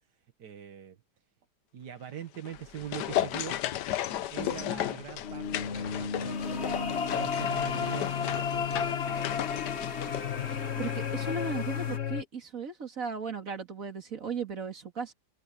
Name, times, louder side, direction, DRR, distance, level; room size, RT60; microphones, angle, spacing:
voice 1, 0.4-1.0 1.7-3.6 4.3-9.6, right 9 dB, 80° right, 1.9 m, -43 dB
sound 1, 2.3-11.0 11.2-11.3, left 12 dB, 85° left, 1.4 m, -35 dB
sound 2, 2.5-12.0, left 3 dB, 65° left, 3.0 m, -45 dB
sound 3, 5.2-12.2, left 7 dB, 45° left, 1.4 m, -32 dB
voice 2, 10.8-15.1, right 5 dB, 55° right, 2.9 m, -36 dB
omnidirectional pair, 1.8 m